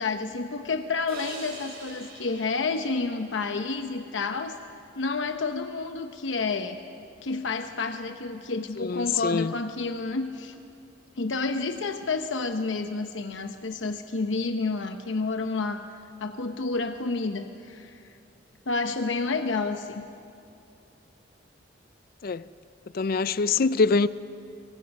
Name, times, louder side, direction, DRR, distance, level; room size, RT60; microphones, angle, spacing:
voice 1, 0.0-4.6 5.0-6.8 7.2-10.6 11.2-15.8 16.2-18.0 18.7-20.0, left 3 dB, 85° left, 7 dB, 0.9 m, -30 dB
sound 1, 1.1-4.4, right 3 dB, 55° right, 7.2 m, -46 dB
voice 2, 8.8-9.5 22.2-22.4 22.9-24.1, left 4 dB, 55° left, 16 dB, 0.5 m, -24 dB
25.5 x 24.0 x 5.4 m, 2.6 s
head